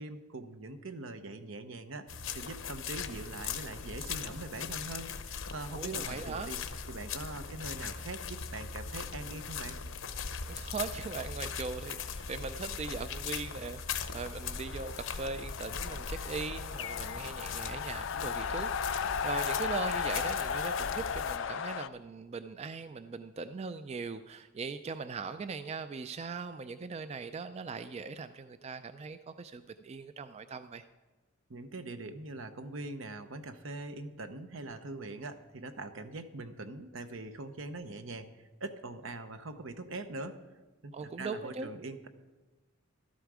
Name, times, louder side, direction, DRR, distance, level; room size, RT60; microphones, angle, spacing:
voice 1, 0.0-6.6 6.9-9.8 31.5-40.4 40.8-42.1, right 2 dB, 75° right, 9 dB, 0.9 m, -42 dB
sound 1, 2.1-21.4, left 6 dB, 85° left, 0.8 m, -40 dB
voice 2, 5.7-6.5 10.5-30.8 40.9-41.7, right 4 dB, 30° right, 11 dB, 0.3 m, -40 dB
sound 2, 14.2-21.9, left 7 dB, 65° left, 0.4 m, -36 dB
13.0 x 11.5 x 4.9 m, 1.2 s
head